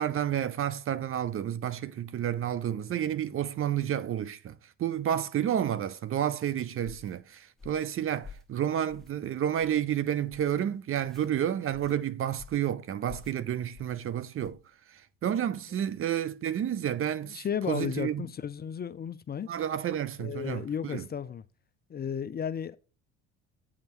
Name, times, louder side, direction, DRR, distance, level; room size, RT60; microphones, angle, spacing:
voice 1, 0.0-4.5 4.8-14.6 14.9-18.2 19.5-21.0, right 10 dB, 40° right, 0.6 m, -30 dB
sound 1, 6.8-7.1 7.6-7.9 8.2-8.5 8.9-9.2 9.6-9.8 10.3-10.6 11.0-11.3 11.7-12.0 12.4-12.7 13.1-13.4 13.7-14.0 14.4-14.6, left 5 dB, ahead, 1.3 m, -49 dB
voice 2, 17.2-19.5 20.2-21.4 21.9-22.8, left 8 dB, 30° left, 0.5 m, -34 dB
8.9 x 3.7 x 6.0 m
supercardioid pair, 85°, 33 cm